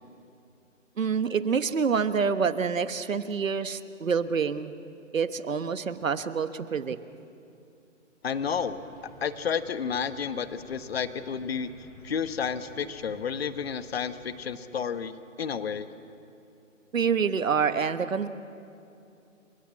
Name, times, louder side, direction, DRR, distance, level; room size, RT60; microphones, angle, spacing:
voice 1, 1.0-4.7 5.1-7.0 16.9-18.3, right 6 dB, 75° right, 11 dB, 1.4 m, -27 dB
voice 2, 8.2-8.8 9.2-11.7 12.0-15.9, left 7 dB, 50° left, 12 dB, 1.2 m, -31 dB
sound 1, 8.3-14.4, equal, 15° left, 5.6 m, -52 dB
30.0 x 16.5 x 8.5 m, 2.7 s
hypercardioid pair, 160°, 39 cm